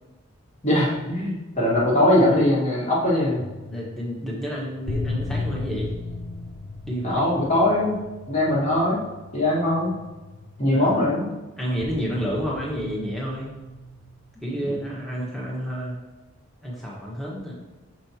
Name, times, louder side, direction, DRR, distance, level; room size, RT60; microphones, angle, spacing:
voice 1, 0.6-3.4 7.0-8.0 8.3-9.0 9.3-10.0 10.6-11.3 14.5-14.7, left 1 dB, 30° left, -5 dB, 1.6 m, -21 dB
sound 1, 3.4-11.3 11.8-14.5 15.3-15.5, left 2 dB, 65° left, 1.0 m, -36 dB
voice 2, 3.7-5.9 6.9-7.2 10.7-11.0 11.6-13.5 14.4-15.9 16.6-17.5, equal, ahead, -5 dB, 1.3 m, -30 dB
6.8 x 5.4 x 2.9 m, 1.1 s
head